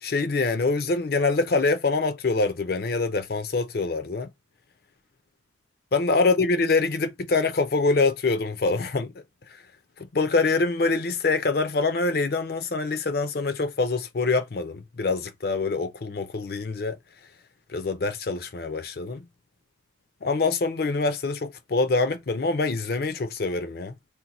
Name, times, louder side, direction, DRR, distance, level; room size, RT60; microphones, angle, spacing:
voice 1, 0.0-4.3 5.9-9.1 9.5-9.6 10.0-17.0 17.7-19.3 20.2-23.9, left 3 dB, 55° left, 0.5 m, -25 dB
2.8 x 2.2 x 4.0 m
head